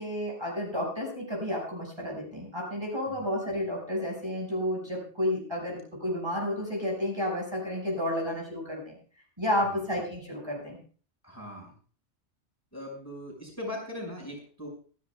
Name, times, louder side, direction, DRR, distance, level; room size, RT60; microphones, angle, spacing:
voice 1, 0.0-9.0 9.4-10.8, left 1 dB, 25° right, -2 dB, 5.7 m, -31 dB
voice 2, 11.2-11.7 12.7-14.7, left 1 dB, 15° left, -1 dB, 5.4 m, -40 dB
28.0 x 10.5 x 2.3 m, 0.41 s
omnidirectional pair, 1.2 m